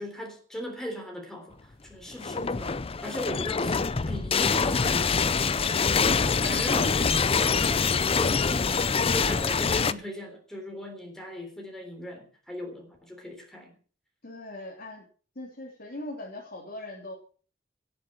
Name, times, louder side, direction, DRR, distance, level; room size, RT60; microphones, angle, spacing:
voice 1, 0.0-5.1 5.6-7.6 8.2-13.7, equal, 5° left, 2 dB, 3.5 m, -39 dB
sound 1, 2.1-9.9, left 5 dB, 30° left, 0.6 m, -25 dB
voice 2, 6.4-7.7 14.2-15.0 15.3-17.1, left 1 dB, 55° left, -2 dB, 3.1 m, -40 dB
17.0 x 8.3 x 6.2 m, 0.42 s
head